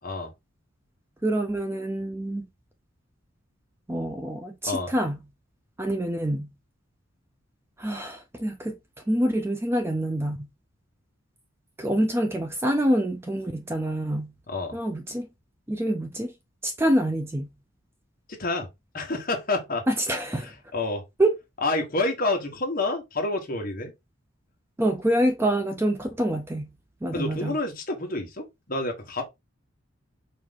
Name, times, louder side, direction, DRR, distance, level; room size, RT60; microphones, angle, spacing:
voice 1, 1.2-2.5 3.9-5.2 5.8-6.5 7.8-8.8 9.1-10.5 11.8-14.4 14.7-15.3 15.7-16.3 16.6-17.5 19.9-20.5 21.2-21.3 24.8-26.8 27.0-27.6, right 1 dB, 10° right, 0.4 m, -26 dB
voice 2, 18.3-18.7 18.9-19.8 20.7-21.0 21.6-23.9 27.1-29.2, left 2 dB, 45° left, 1.2 m, -28 dB
4.7 x 2.6 x 3.6 m
head